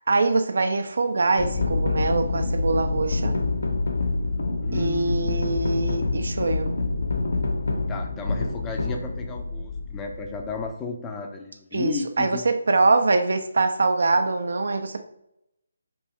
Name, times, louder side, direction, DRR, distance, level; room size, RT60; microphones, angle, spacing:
voice 1, 0.1-3.4 4.7-6.7 11.7-15.0, right 3 dB, 65° right, 7 dB, 0.4 m, -23 dB
Taiko Drums, 1.4-10.7, left 3 dB, 65° left, 0.5 m, -27 dB
voice 2, 4.6-5.2 7.9-12.5, left 4 dB, 15° left, 3 dB, 0.4 m, -34 dB
3.0 x 2.6 x 3.6 m, 0.81 s
figure-of-eight pair, 150°, 0 cm